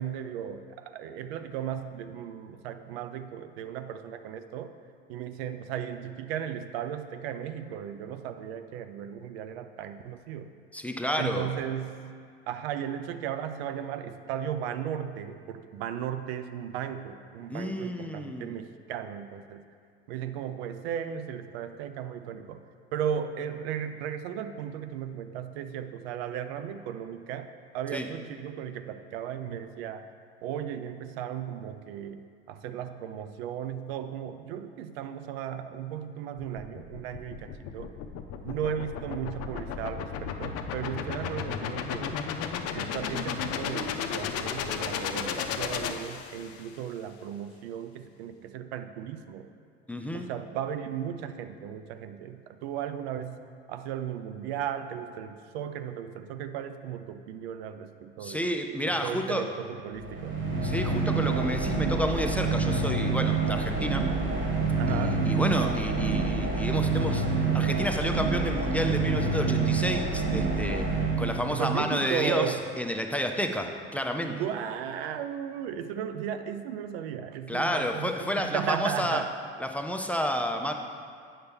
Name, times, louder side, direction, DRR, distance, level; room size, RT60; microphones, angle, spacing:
voice 1, 0.0-4.7 5.1-10.5 11.1-12.1 12.5-19.6 20.1-22.6 22.9-30.1 30.4-32.2 32.5-37.9 38.4-42.3 42.7-49.5 50.1-53.4 53.7-58.4 58.9-60.4 64.8-65.3 71.5-72.6 74.2-79.3, right 9 dB, 75° right, 9 dB, 0.5 m, -36 dB
voice 2, 10.7-11.5 17.5-18.5 27.9-28.1 49.9-50.3 58.2-59.5 60.6-64.1 64.9-67.3 67.5-70.9 71.2-74.4 77.5-79.2 79.6-80.7, equal, 5° left, 4 dB, 0.5 m, -30 dB
sound 1, 36.4-46.7, left 7 dB, 50° left, 0.6 m, -34 dB
sound 2, 60.0-71.8, right 4 dB, 35° right, 1.8 m, -27 dB
7.9 x 5.7 x 3.5 m, 2.2 s
hypercardioid pair, 70°, 30 cm